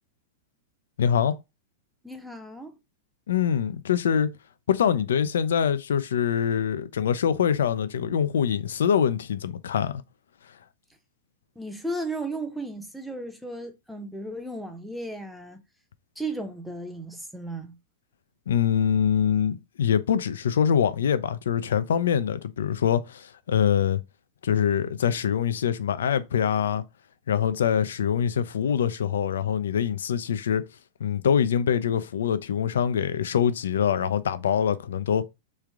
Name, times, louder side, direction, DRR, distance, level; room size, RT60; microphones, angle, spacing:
voice 1, 1.0-1.4 3.3-4.3 4.7-10.0 18.5-24.0 24.4-26.8 27.3-30.6 31.0-35.2, left 8 dB, 80° left, 0.4 m, -24 dB
voice 2, 2.0-2.7 11.6-15.6 16.2-17.8, right 2 dB, ahead, 0.7 m, -35 dB
3.2 x 2.4 x 3.4 m
hypercardioid pair, 115°, 0 cm